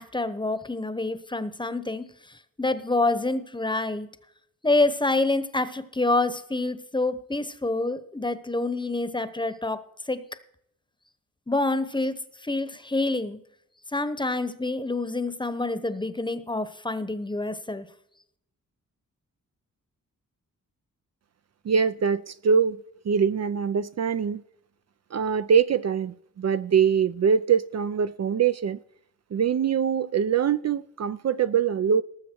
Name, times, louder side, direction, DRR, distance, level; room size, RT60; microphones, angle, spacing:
voice 1, 0.0-2.1 2.6-4.1 4.6-9.8 10.1-10.2 11.5-13.4 13.9-17.9, left 2 dB, 15° left, 0.9 m, -27 dB
voice 2, 21.7-22.8 23.1-24.4 25.1-28.8 29.3-32.0, right 7 dB, 50° right, 0.5 m, -23 dB
19.0 x 7.0 x 4.5 m
wide cardioid pair, 100°, 33 cm